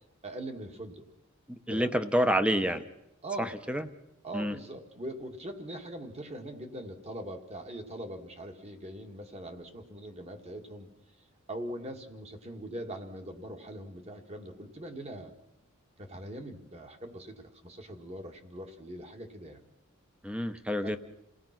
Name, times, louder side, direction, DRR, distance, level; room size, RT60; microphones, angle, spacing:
voice 1, 0.2-1.0 1.7-2.0 3.2-3.6 4.2-10.9 11.2-15.3 16.0-19.6 20.8-21.0, right 1 dB, 30° right, 5 dB, 2.0 m, -42 dB
voice 2, 1.7-2.8 3.7-3.9 4.3-4.5 20.2-21.0, equal, 5° right, 10 dB, 1.0 m, -27 dB
29.0 x 18.0 x 6.0 m, 0.83 s
head